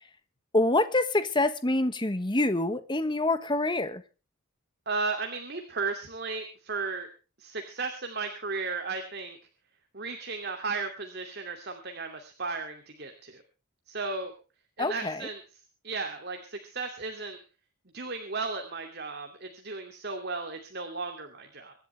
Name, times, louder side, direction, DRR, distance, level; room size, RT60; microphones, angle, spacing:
voice 1, 0.5-4.0 14.8-15.3, left 2 dB, 20° left, 1.3 m, -26 dB
voice 2, 4.9-7.1 7.4-9.4 9.9-13.4 13.9-14.3 14.8-15.4 15.8-17.4 17.9-21.7, right 4 dB, 50° right, 2.6 m, -35 dB
25.0 x 11.5 x 3.4 m
head